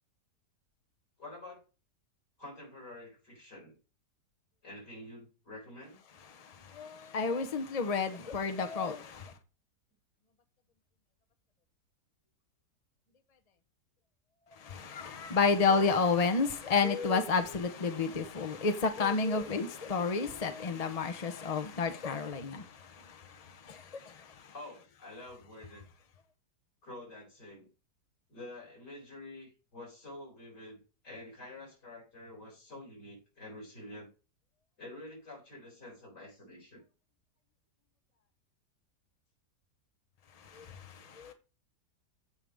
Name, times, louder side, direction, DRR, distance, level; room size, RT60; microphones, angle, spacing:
voice 1, 1.2-1.6 2.4-3.8 4.6-6.0 15.6-15.9 24.5-25.9 26.8-27.7 28.3-30.8 31.0-34.1 34.8-36.8, left 1 dB, 75° left, 5.7 m, -48 dB
voice 2, 6.3-9.3 14.6-24.5 40.4-41.3, left 4 dB, 40° left, 0.5 m, -31 dB
15.0 x 5.2 x 3.4 m
omnidirectional pair, 1.8 m